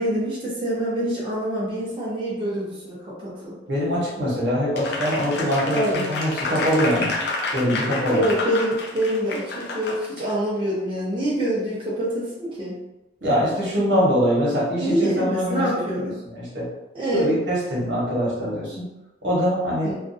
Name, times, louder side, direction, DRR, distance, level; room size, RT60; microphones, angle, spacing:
voice 1, 0.0-3.5 5.7-6.1 8.1-12.8 13.9-14.0 14.8-16.2 16.9-17.3 19.8-20.0, right 1 dB, 30° right, -8 dB, 0.6 m, -25 dB
voice 2, 3.7-7.1 7.5-8.3 13.2-16.7 17.1-18.9 19.2-20.0, equal, 70° right, -6 dB, 1.1 m, -23 dB
Applause, 4.8-10.3, left 3 dB, 65° left, 0.5 m, -29 dB
2.5 x 2.3 x 2.6 m, 0.98 s
head